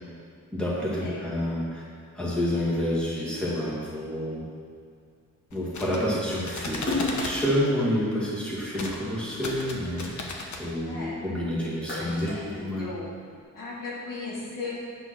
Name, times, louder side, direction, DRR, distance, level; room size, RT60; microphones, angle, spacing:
voice 1, 0.5-1.8 2.1-4.4 5.5-12.9, equal, 5° left, -7 dB, 2.4 m, -29 dB
sound 1, 5.5-7.4 8.7-9.0 9.3-10.6, left 3 dB, 60° left, 1.2 m, -35 dB
Splash splatter, 6.8-9.3 9.8-11.2 11.6-13.3, left 2 dB, 35° left, 1.5 m, -33 dB
voice 2, 10.8-11.2 11.9-13.1 13.5-14.7, left 3 dB, 80° left, -6 dB, 2.5 m, -37 dB
9.2 x 6.0 x 6.2 m, 2.2 s
wide cardioid pair, 150°, 32 cm